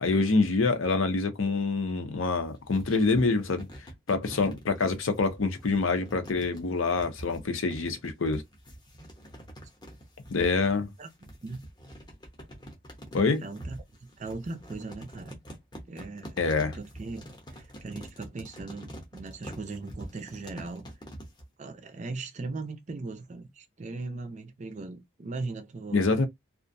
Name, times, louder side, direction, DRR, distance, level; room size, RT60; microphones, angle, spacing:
voice 1, 0.0-3.7 4.1-8.4 10.3-10.9 13.1-13.4 16.4-16.8 25.9-26.3, left 3 dB, 80° left, 0.6 m, -26 dB
sound 1, 2.3-21.5, equal, 20° left, 0.7 m, -46 dB
voice 2, 11.0-11.6 13.4-15.4 15.9-16.4 16.7-20.9 21.6-26.0, right 3 dB, 35° right, 0.4 m, -39 dB
2.4 x 2.1 x 2.6 m
head